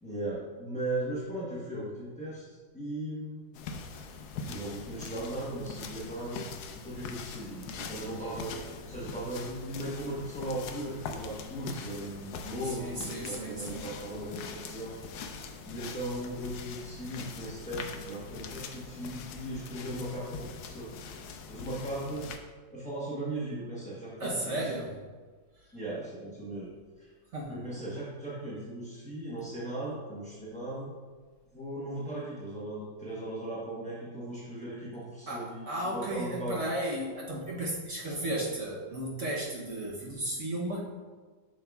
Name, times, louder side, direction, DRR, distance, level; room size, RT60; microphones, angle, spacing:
voice 1, 0.0-3.4 4.5-6.5 6.8-8.5 8.9-14.9 15.6-20.9 21.5-22.3 22.7-24.7 25.7-26.7 27.0-27.1 27.5-30.9 31.5-36.6, right 1 dB, 5° left, -9 dB, 0.6 m, -37 dB
sound 1, 3.5-22.4, left 5 dB, 70° left, 1.0 m, -43 dB
voice 2, 12.6-13.9 24.2-25.0 27.3-27.7 35.3-40.8, right 1 dB, 55° right, -3 dB, 0.9 m, -34 dB
7.5 x 6.2 x 2.3 m, 1.4 s
omnidirectional pair, 2.0 m